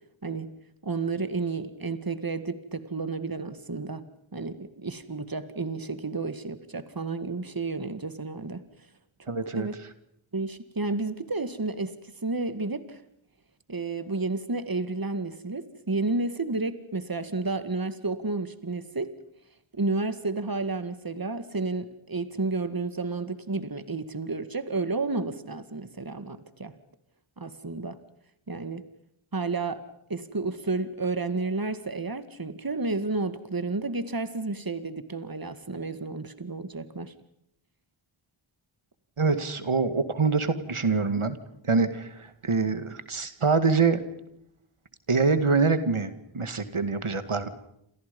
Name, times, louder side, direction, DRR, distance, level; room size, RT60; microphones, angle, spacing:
voice 1, 0.2-0.5 0.8-4.0 4.3-8.6 9.2-9.7 10.3-13.0 13.7-19.1 19.7-26.7 27.4-28.0 28.5-28.8 29.3-29.8 30.1-37.1, right 3 dB, 45° right, 12 dB, 2.1 m, -31 dB
voice 2, 9.3-9.7 39.2-41.4 41.6-44.0 45.1-47.5, right 4 dB, 80° right, 11 dB, 2.2 m, -25 dB
29.0 x 27.5 x 5.4 m, 0.76 s
wide cardioid pair, 50°, 50 cm